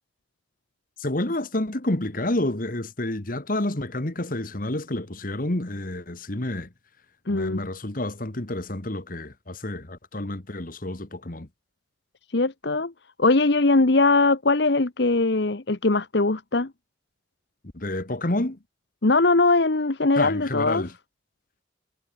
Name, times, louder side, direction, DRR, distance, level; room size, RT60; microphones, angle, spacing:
voice 1, 1.0-6.7 7.3-11.5 17.7-18.6 20.2-20.9, left 1 dB, 45° left, 1.7 m, -29 dB
voice 2, 7.3-7.6 12.3-12.9 13.2-16.7 19.0-20.8, left 3 dB, 60° left, 1.1 m, -21 dB
head